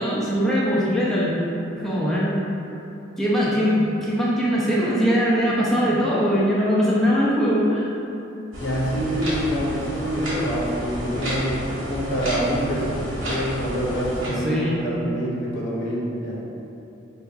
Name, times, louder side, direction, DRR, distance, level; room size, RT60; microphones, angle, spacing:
voice 1, 0.0-1.3 1.7-2.4 3.2-7.9 14.3-14.8, equal, ahead, -8 dB, 0.4 m, -21 dB
sound 1, 8.5-14.3, equal, 90° right, 1.4 m, -31 dB
voice 2, 8.6-16.4, equal, 65° left, -5 dB, 0.7 m, -26 dB
5.1 x 2.3 x 2.3 m, 2.9 s
head